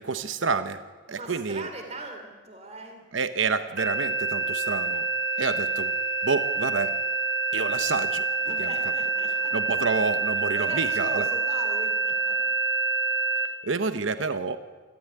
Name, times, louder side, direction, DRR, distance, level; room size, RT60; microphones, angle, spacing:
voice 1, 0.0-1.7 3.1-5.1 5.4-6.0 6.2-7.0 7.5-8.2 8.6-8.7 9.5-11.2 13.6-14.6, right 4 dB, 85° right, 11 dB, 1.0 m, -28 dB
voice 2, 1.1-3.0 8.4-9.5 10.5-12.4, right 2 dB, 35° right, 4 dB, 3.1 m, -39 dB
sound 1, 3.8-13.5, right 3 dB, 65° right, 2.2 m, -27 dB
27.5 x 14.5 x 9.7 m, 1.4 s
head